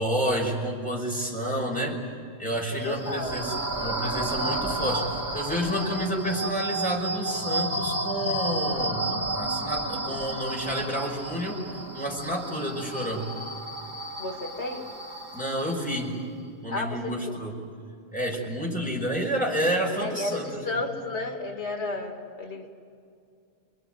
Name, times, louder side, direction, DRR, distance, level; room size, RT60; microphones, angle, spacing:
voice 1, 0.0-2.0 2.4-11.6 11.9-13.3 15.3-16.1 16.6-17.5 18.1-20.8, equal, 5° left, -1 dB, 5.7 m, -29 dB
voice 2, 2.7-3.3 14.2-14.9 16.7-17.4 20.0-22.7, left 2 dB, 80° left, 2 dB, 2.6 m, -33 dB
sound 1, 2.8-16.2, right 1 dB, 70° right, 2.9 m, -32 dB
28.5 x 22.0 x 9.3 m, 2.4 s
omnidirectional pair, 1.1 m